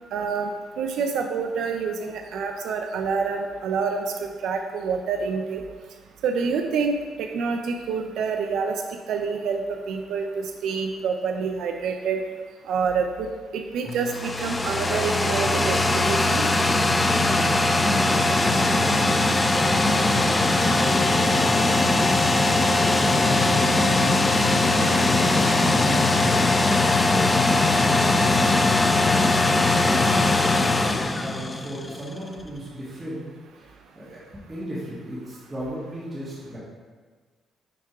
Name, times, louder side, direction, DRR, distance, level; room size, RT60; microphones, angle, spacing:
voice 1, 0.1-0.5 0.8-5.6 6.2-8.8 9.1-12.2 12.7-13.3 13.5-15.8 16.1-16.4, right 5 dB, 80° right, 4 dB, 0.4 m, -27 dB
sound 1, 13.9-32.0, left 2 dB, 20° left, 0.4 m, -20 dB
voice 2, 17.8-19.8 20.5-22.1 22.7-27.3 27.7-28.9 29.5-30.2 30.8-33.2 33.5-36.6, equal, 25° right, -9 dB, 1.7 m, -35 dB
6.0 x 3.5 x 4.6 m, 1.5 s
cardioid pair, 90°, 0 cm